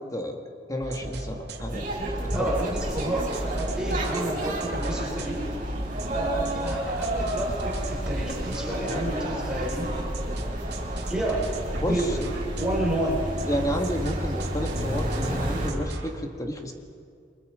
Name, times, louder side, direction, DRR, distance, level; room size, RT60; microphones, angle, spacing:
voice 1, 0.7-1.9 2.4-2.6 11.8-12.1 13.5-16.7, equal, 20° left, 3 dB, 2.2 m, -30 dB
sound 1, 0.8-16.1, right 1 dB, 70° right, 2.7 m, -37 dB
sound 2, 1.7-15.7, right 1 dB, 50° right, 5.8 m, -31 dB
voice 2, 2.3-5.4 6.1-9.9 11.1-11.5 11.9-12.2 12.6-13.4, right 1 dB, 5° right, -5 dB, 6.0 m, -30 dB
29.0 x 24.0 x 5.3 m, 2.2 s
head